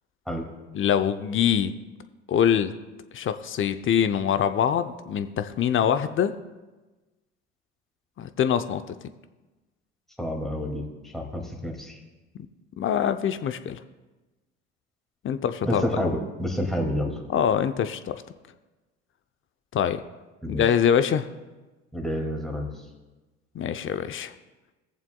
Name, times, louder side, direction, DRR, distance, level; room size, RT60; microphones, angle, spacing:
voice 1, 0.7-1.7 2.3-2.7 3.1-6.3 8.2-8.8 12.8-13.8 15.2-15.8 17.3-18.2 19.7-20.0 20.5-21.3 23.5-24.3, left 8 dB, 35° left, 10 dB, 0.7 m, -24 dB
voice 2, 10.2-10.9 11.1-12.0 15.7-17.2 20.4-20.6 21.9-22.7, equal, ahead, 0 dB, 2.4 m, -28 dB
19.5 x 7.2 x 2.3 m, 1.2 s
hypercardioid pair, 70°, 35 cm